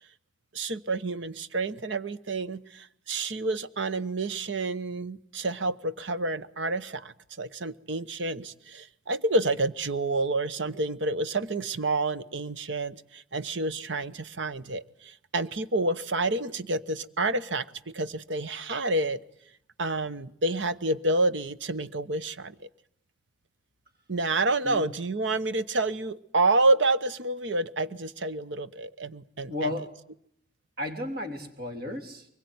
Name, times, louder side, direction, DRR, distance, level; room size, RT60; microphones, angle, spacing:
voice 1, 0.5-19.2 19.8-22.7 24.1-29.7, right 2 dB, 70° right, 13 dB, 1.1 m, -29 dB
voice 2, 29.5-29.9 30.8-32.3, left 1 dB, 50° right, 5 dB, 3.5 m, -33 dB
24.0 x 21.5 x 9.5 m, 0.69 s
head